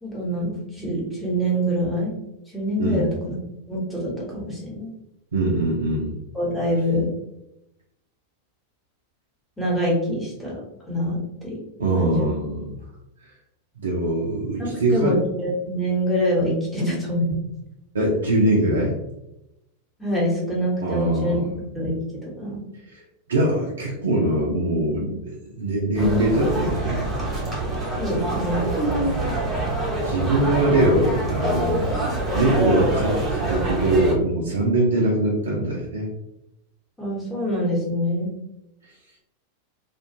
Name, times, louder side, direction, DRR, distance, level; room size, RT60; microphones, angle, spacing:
voice 1, 0.0-2.1 2.5-3.4 3.7-4.9 6.3-7.1 9.6-10.6 10.9-11.6 12.0-12.3 14.6-17.3 20.0-21.4 21.7-22.6 28.0-28.7 37.0-38.3, equal, 5° left, -5 dB, 1.0 m, -25 dB
voice 2, 2.8-3.1 5.3-6.1 11.8-12.8 13.8-15.2 17.9-18.9 20.8-21.5 23.3-27.0 30.0-31.8 32.3-36.1, right 1 dB, 70° right, -3 dB, 0.5 m, -22 dB
sound 1, 26.0-34.2, right 2 dB, 20° right, 0.7 m, -25 dB
2.4 x 2.2 x 2.7 m, 0.87 s
figure-of-eight pair, 90°, 0 cm